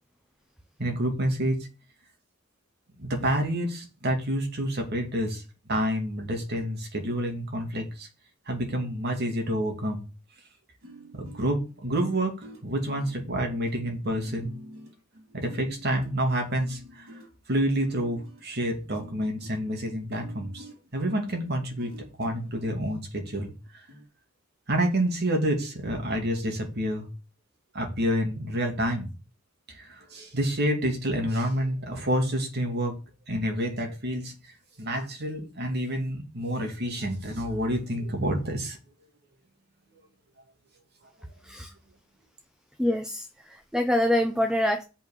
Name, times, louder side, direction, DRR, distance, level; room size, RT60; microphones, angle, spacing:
voice 1, 0.8-1.7 3.0-5.4 5.7-8.1 8.5-10.0 11.1-12.3 12.6-14.5 15.3-17.1 17.5-20.7 20.9-23.5 24.7-27.1 27.7-29.1 29.7-33.0 33.3-34.3 34.8-38.8, equal, 55° right, 2.6 m, -28 dB
sound 1, 10.8-22.6 23.3-23.4 23.9-24.1, equal, 90° right, 4.0 m, -48 dB
voice 2, 42.8-44.8, left 1 dB, 5° right, 0.7 m, -25 dB
6.5 x 5.7 x 6.5 m
head